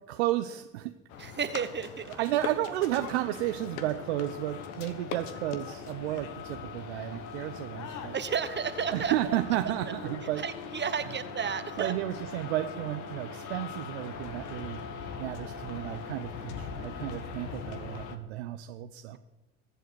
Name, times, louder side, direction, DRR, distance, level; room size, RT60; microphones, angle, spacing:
voice 1, 0.1-0.9 2.1-8.1 8.9-10.4 11.8-14.8 15.2-19.2, right 14 dB, 80° right, 9 dB, 0.7 m, -32 dB
sound 1, 1.1-18.2, left 6 dB, 70° left, 1.4 m, -41 dB
voice 2, 1.2-2.1 8.1-9.1 9.6-9.9 10.4-11.9 19.1-19.2, right 7 dB, 35° right, 11 dB, 1.0 m, -32 dB
21.5 x 7.9 x 4.6 m, 1.0 s
hypercardioid pair, 60°, 32 cm